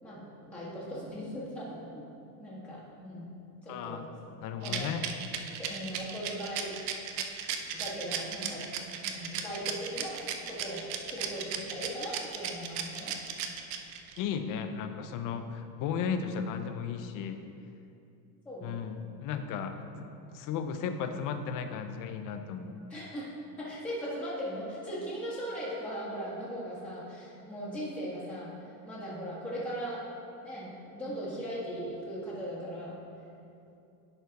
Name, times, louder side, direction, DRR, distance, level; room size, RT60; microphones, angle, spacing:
voice 1, 0.0-2.1 2.4-3.4 3.6-4.3 4.6-4.9 5.7-6.8 7.7-8.6 9.0-13.1 18.4-18.8 22.9-23.3 23.6-28.5 28.8-30.0 30.4-33.0, equal, 5° left, -10 dB, 1.6 m, -39 dB
voice 2, 3.7-4.1 4.4-5.0 14.2-17.4 18.6-22.8, left 7 dB, 45° left, 8 dB, 0.5 m, -35 dB
Rattle, 4.6-14.2, right 9 dB, 65° right, 0.8 m, -35 dB
10.5 x 4.5 x 4.0 m, 2.7 s
cardioid pair, 145°, 46 cm